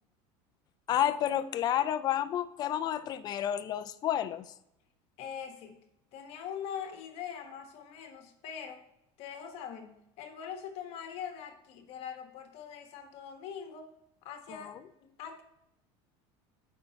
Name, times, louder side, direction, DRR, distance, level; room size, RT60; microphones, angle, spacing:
voice 1, 0.9-4.4, left 11 dB, 30° left, 12 dB, 0.4 m, -30 dB
voice 2, 5.2-5.8 6.1-8.8 9.2-13.9 14.2-14.7 15.0-15.4, left 8 dB, 45° left, 5 dB, 1.3 m, -42 dB
14.5 x 5.4 x 2.8 m, 0.81 s
cardioid pair, 160°, 14 cm